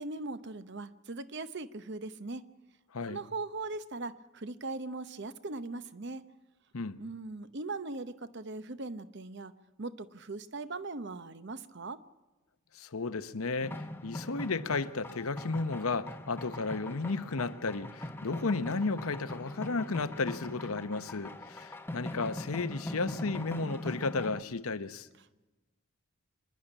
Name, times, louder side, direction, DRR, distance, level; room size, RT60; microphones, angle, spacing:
voice 1, 0.0-2.4 3.1-6.2 7.0-9.5 9.8-12.0, right 3 dB, 50° right, 0.8 m, -39 dB
voice 2, 12.7-25.1, left 3 dB, 80° left, 0.9 m, -33 dB
sound 1, 13.6-24.4, left 1 dB, 10° left, 0.8 m, -41 dB
26.0 x 10.5 x 9.9 m
head